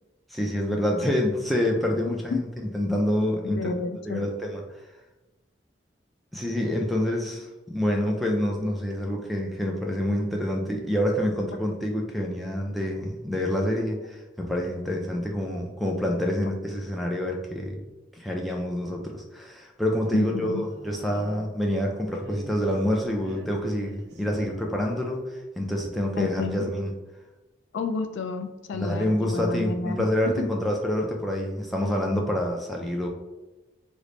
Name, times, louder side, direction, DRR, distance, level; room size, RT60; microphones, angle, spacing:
voice 1, 0.3-2.4 2.7-3.7 4.1-4.6 6.3-17.9 18.2-26.9 28.7-33.1, left 1 dB, ahead, -1 dB, 0.4 m, -27 dB
voice 2, 3.4-4.3 20.1-20.6 26.2-26.7 27.7-30.5, left 4 dB, 80° left, 7 dB, 0.3 m, -31 dB
sound 1, 20.0-21.7 22.1-24.8, right 1 dB, 60° right, 0.5 m, -45 dB
3.2 x 2.1 x 3.8 m, 1.1 s
head